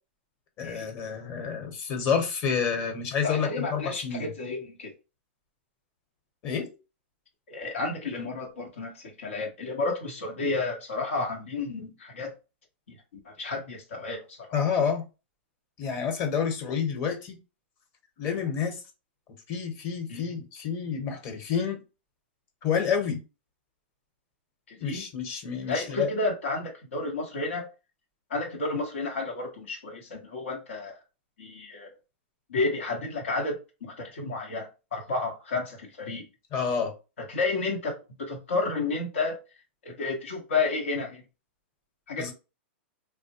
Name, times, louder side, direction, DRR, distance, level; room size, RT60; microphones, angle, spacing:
voice 1, 0.6-4.3 6.4-6.8 14.5-15.1 15.8-17.4 18.2-18.8 19.5-21.8 22.6-23.2 24.8-26.1 36.5-36.9 42.2-42.3, left 6 dB, 40° left, 1.0 m, -29 dB
voice 2, 3.2-4.9 7.5-12.3 13.2-14.6 20.1-20.2 24.7-25.0 25.7-27.7 28.3-31.0 31.4-31.9 32.5-36.2 37.3-39.4 39.8-41.2 42.1-42.3, left 3 dB, 85° left, 1.0 m, -31 dB
3.3 x 2.1 x 2.8 m
hypercardioid pair, 135°, 6 cm